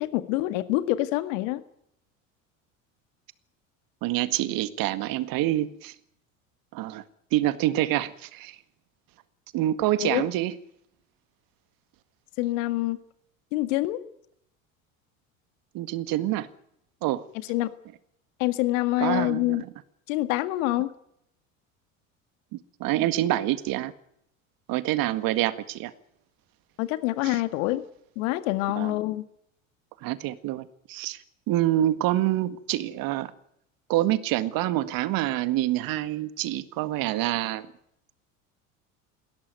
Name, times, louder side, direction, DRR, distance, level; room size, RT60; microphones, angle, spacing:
voice 1, 0.0-1.6 10.0-10.2 12.4-13.0 13.5-14.0 17.5-17.7 18.4-19.6 20.1-20.9 26.8-27.8 28.2-29.2, left 17 dB, 70° left, 12 dB, 2.0 m, -26 dB
voice 2, 4.0-5.9 6.7-7.0 7.3-8.6 9.5-10.5 15.7-16.5 17.0-17.2 19.0-19.6 22.8-23.9 24.7-25.9 27.2-27.3 28.8-29.0 30.0-31.2 31.5-33.3 33.9-37.7, right 14 dB, 55° right, 13 dB, 1.9 m, -26 dB
20.5 x 17.0 x 9.3 m, 0.73 s
hypercardioid pair, 75°, 40 cm